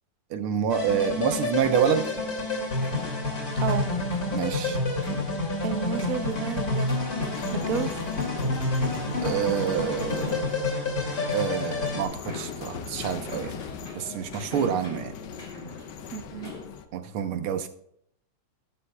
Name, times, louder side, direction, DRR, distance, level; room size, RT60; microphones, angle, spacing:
voice 1, 0.3-2.1 4.3-4.8 9.2-10.4 11.3-13.5 13.9-15.2 16.9-17.7, right 8 dB, 90° right, 9 dB, 1.8 m, -27 dB
sound 1, 0.7-12.0, left 2 dB, 45° left, 3.0 m, -29 dB
sound 2, 2.0-16.7, left 1 dB, 25° left, 3.3 m, -42 dB
voice 2, 5.6-6.9 7.5-7.9 16.1-16.5, right 8 dB, 65° right, 11 dB, 0.9 m, -31 dB
sound 3, 7.3-16.9, left 7 dB, 65° left, 1.3 m, -40 dB
13.0 x 12.0 x 2.3 m, 0.70 s
omnidirectional pair, 2.3 m